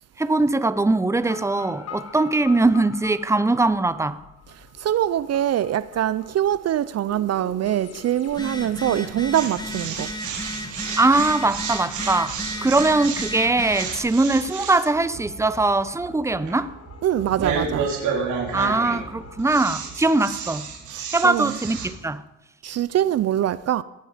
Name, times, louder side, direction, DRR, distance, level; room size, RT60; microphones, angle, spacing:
voice 1, 0.2-4.2 11.0-12.4 12.6-16.7 18.5-20.7 21.1-22.2, right 2 dB, 10° right, 0.8 m, -21 dB
sound 1, 1.1-19.6, left 6 dB, 55° left, 1.7 m, -45 dB
voice 2, 4.8-10.1 17.0-17.9 20.9-21.5 22.6-23.8, right 11 dB, 55° right, 0.6 m, -23 dB
Telephone, 8.3-14.0, left 1 dB, 15° left, 2.6 m, -34 dB
sound 2, 9.3-21.9, right 6 dB, 75° right, 3.8 m, -31 dB
18.0 x 14.0 x 5.1 m
cardioid pair, 90°, 30 cm